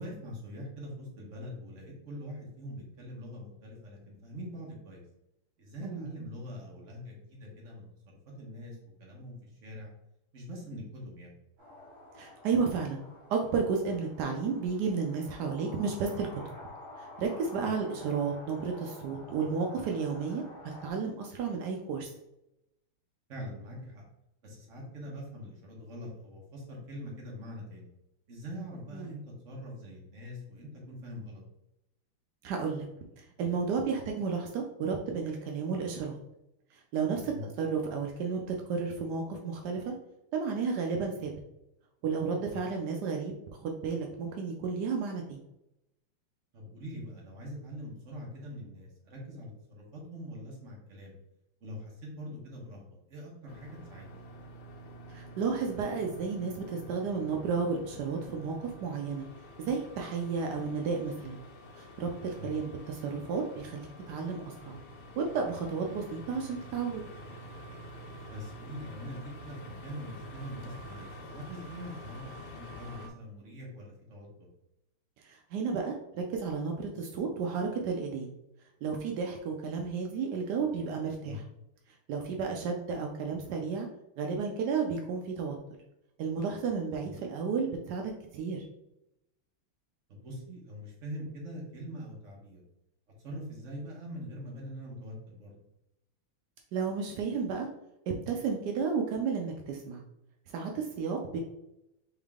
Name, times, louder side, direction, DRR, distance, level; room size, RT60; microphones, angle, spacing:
voice 1, 0.0-5.0 5.6-9.9 10.3-11.3 17.6-17.7 23.3-24.0 24.4-27.9 28.3-31.4 37.2-37.4 42.5-42.6 46.5-51.1 51.6-54.2 62.3-62.5 68.3-74.3 81.2-81.4 87.0-87.2 90.1-92.6 93.2-95.5, equal, 40° right, -3 dB, 1.3 m, -43 dB
sound 1, 11.6-20.9, left 2 dB, 65° right, 2.3 m, -49 dB
voice 2, 12.2-13.0 13.3-16.4 17.0-22.1 28.9-29.1 32.4-32.9 33.2-36.2 36.9-37.3 37.6-38.4 38.7-39.9 40.3-41.3 42.0-43.3 43.6-45.4 55.1-59.3 59.6-61.4 61.8-64.8 65.2-67.0 75.2-78.3 78.8-81.4 82.1-83.9 84.2-85.6 86.2-88.7 96.7-97.7 98.1-100.0 100.5-101.4, right 5 dB, 80° right, 2 dB, 0.9 m, -32 dB
sound 2, 53.5-73.1, equal, 80° left, 1.6 m, -48 dB
3.8 x 3.5 x 3.5 m, 0.86 s
omnidirectional pair, 2.4 m